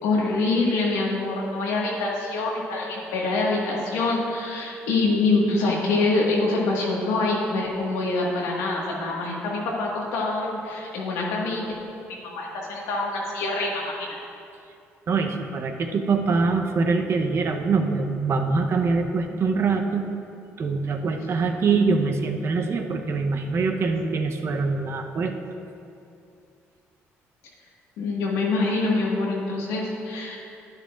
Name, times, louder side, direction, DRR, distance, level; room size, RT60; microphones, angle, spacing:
voice 1, 0.0-11.7 12.1-14.1 28.0-30.4, left 3 dB, 85° left, -3 dB, 1.7 m, -25 dB
voice 2, 15.1-20.1 20.6-25.3, right 4 dB, 50° right, 4 dB, 0.8 m, -24 dB
10.5 x 10.0 x 2.5 m, 2.6 s
supercardioid pair, 75°, 6 cm